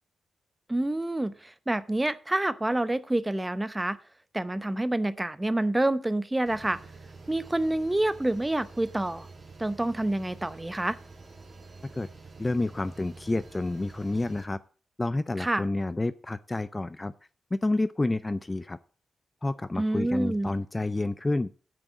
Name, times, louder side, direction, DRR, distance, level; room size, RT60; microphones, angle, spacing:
voice 1, 0.7-4.0 4.3-6.8 7.3-9.3 9.6-11.0 15.4-15.6 19.8-20.5, right 1 dB, 15° right, 14 dB, 0.7 m, -27 dB
sound 1, 6.5-14.5, right 3 dB, 35° right, 2.0 m, -48 dB
voice 2, 12.4-14.6 15.0-17.1 17.5-18.8 19.4-21.5, left 2 dB, 20° left, 15 dB, 0.4 m, -29 dB
8.7 x 6.3 x 7.8 m, 0.39 s
wide cardioid pair, 110°, 0 cm